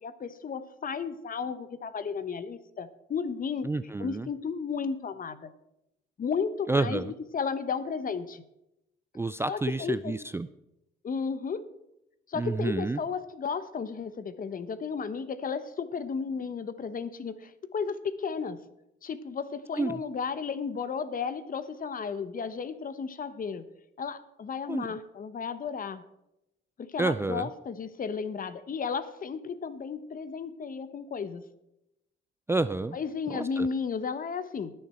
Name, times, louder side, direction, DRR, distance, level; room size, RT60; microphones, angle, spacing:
voice 1, 0.0-3.7 4.0-5.5 6.2-7.0 7.3-8.4 9.5-10.1 11.0-11.6 12.3-18.6 19.0-23.6 24.0-26.0 26.8-31.4 32.9-34.7, left 5 dB, 45° left, 13 dB, 0.9 m, -33 dB
voice 2, 3.6-4.3 6.7-7.1 9.1-10.5 12.3-13.0 19.8-20.0 24.7-24.9 27.0-27.5 32.5-33.0 33.3-33.7, right 3 dB, 10° right, 13 dB, 0.3 m, -29 dB
19.5 x 6.6 x 4.4 m, 0.86 s
cardioid pair, 90°, 20 cm